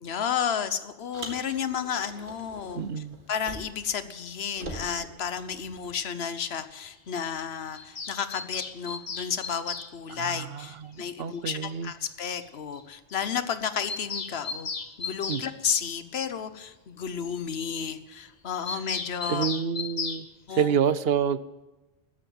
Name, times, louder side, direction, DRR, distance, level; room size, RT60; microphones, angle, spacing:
voice 1, 0.0-14.7 15.0-19.5 20.5-20.7, left 7 dB, 70° left, 12 dB, 1.2 m, -32 dB
Car, 1.1-3.9 4.2-6.0, right 2 dB, 50° right, 2.4 m, -43 dB
voice 2, 2.7-3.2 10.1-11.9 15.3-15.4 19.3-20.3 20.5-21.4, right 7 dB, 70° right, 15 dB, 0.9 m, -28 dB
Bird vocalization bird call bird song, 7.7-9.9 11.3-11.4 11.7-11.8 12.0-12.1 12.4-12.5 12.7-12.8 13.1-13.2 13.5-15.5 18.7-20.2, left 4 dB, 40° left, 1.1 m, -35 dB
13.5 x 10.5 x 9.3 m, 1.1 s
omnidirectional pair, 1.1 m